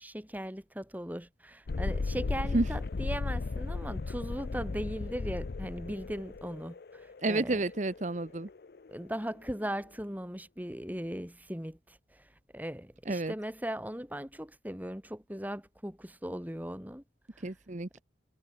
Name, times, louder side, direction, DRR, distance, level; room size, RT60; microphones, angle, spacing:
voice 1, 0.0-7.6 8.9-17.0 17.3-17.5, equal, 10° right, 3.4 m, -38 dB
Thunderstorm, 1.7-9.1, left 3 dB, 55° left, 0.5 m, -36 dB
voice 2, 7.2-8.5 13.1-13.3 17.4-18.0, right 2 dB, 40° right, 0.9 m, -30 dB
head